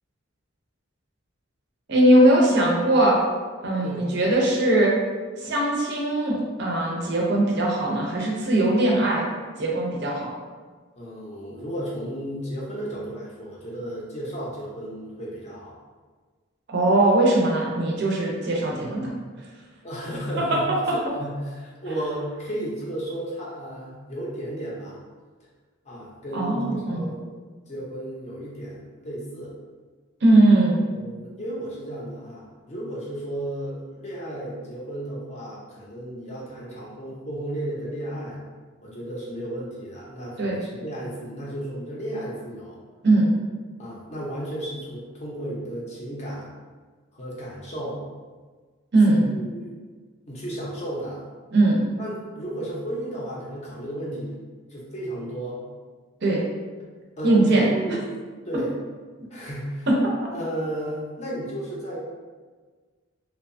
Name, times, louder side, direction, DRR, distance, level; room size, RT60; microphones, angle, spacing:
voice 1, 1.9-3.2 3.6-4.9 5.4-9.3 9.6-10.3 16.7-19.1 20.4-20.6 26.3-27.1 30.2-30.8 40.4-40.6 43.0-43.3 48.9-49.2 51.5-51.8 56.2-56.4 57.2-57.7 59.9-60.3, right 1 dB, 50° right, -3 dB, 0.5 m, -20 dB
voice 2, 11.0-15.7 19.8-25.0 25.8-27.3 27.7-29.5 30.9-38.4 38.8-42.8 43.8-46.5 47.1-48.0 49.0-49.7 50.2-51.2 52.0-54.4 54.7-55.6 57.2-58.0 58.4-58.7 59.3-59.9 60.3-62.0, right 1 dB, 30° left, -5 dB, 0.5 m, -33 dB
2.7 x 2.2 x 2.5 m, 1.5 s
head